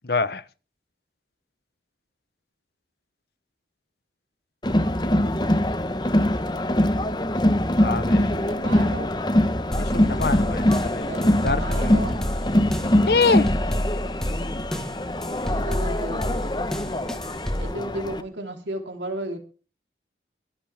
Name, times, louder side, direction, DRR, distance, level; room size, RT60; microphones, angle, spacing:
voice 1, 0.0-0.4 7.8-8.2 9.8-12.0 13.1-13.5, left 4 dB, 55° left, 0.9 m, -25 dB
Crowd, 4.6-18.2, left 1 dB, 25° left, 1.0 m, -23 dB
voice 2, 7.8-9.1 11.1-12.2 15.5-16.4 17.6-19.4, right 1 dB, 75° right, 3.4 m, -34 dB
sound 1, 9.7-17.7, equal, 5° left, 1.5 m, -30 dB
24.0 x 8.2 x 3.5 m
head